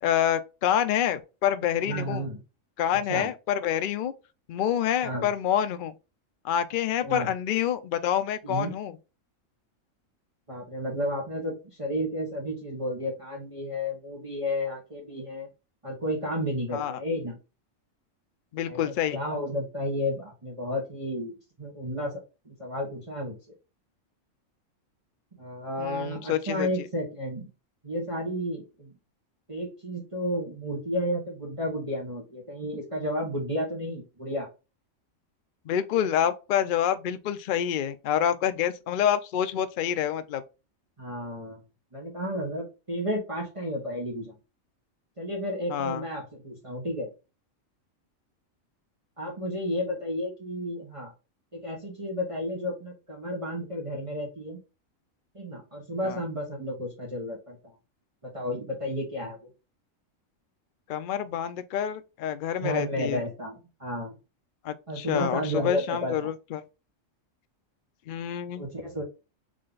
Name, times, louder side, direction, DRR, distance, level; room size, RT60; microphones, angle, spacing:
voice 1, 0.0-2.3 2.8-4.1 4.5-5.9 6.4-8.9 16.7-16.9 18.5-19.2 25.8-26.7 35.7-40.4 45.7-46.0 56.0-56.2 60.9-63.2 64.6-66.6 68.1-68.7, left 10 dB, 65° left, 0.5 m, -27 dB
voice 2, 1.8-2.4 3.1-3.3 5.0-5.3 7.0-7.3 8.4-8.8 10.5-15.5 15.8-17.4 18.7-22.1 22.4-23.3 25.4-27.5 27.8-28.9 29.5-34.5 41.0-41.6 41.9-44.3 45.2-47.1 49.2-51.1 51.5-54.6 55.3-57.6 58.2-59.4 62.6-64.2 64.9-66.1 68.6-69.0, equal, 25° right, 1.5 m, -32 dB
3.8 x 3.3 x 3.8 m
omnidirectional pair, 1.4 m